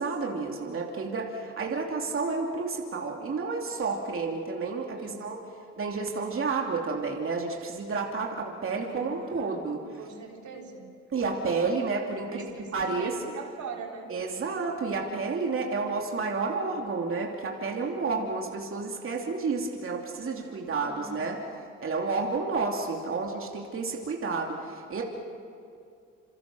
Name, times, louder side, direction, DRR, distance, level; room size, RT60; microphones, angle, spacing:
voice 1, 0.0-5.4 5.8-9.8 11.1-12.4 12.7-13.2 14.1-21.4 21.8-25.0, right 4 dB, 45° right, 0 dB, 2.9 m, -30 dB
voice 2, 4.9-5.3 8.8-9.7 10.0-10.9 12.3-14.1 20.4-21.3, right 5 dB, 70° right, 1 dB, 3.6 m, -43 dB
27.5 x 27.5 x 6.3 m, 2.4 s
cardioid pair, 90°, 30 cm